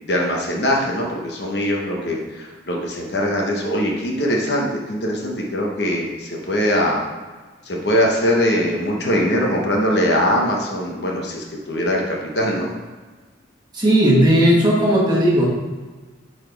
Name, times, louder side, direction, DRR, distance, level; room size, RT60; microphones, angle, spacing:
voice 1, 0.1-7.1 7.7-12.7, equal, 60° left, -1 dB, 1.1 m, -21 dB
voice 2, 13.7-15.5, equal, 25° right, -5 dB, 1.4 m, -15 dB
8.7 x 4.1 x 3.4 m, 1.3 s
head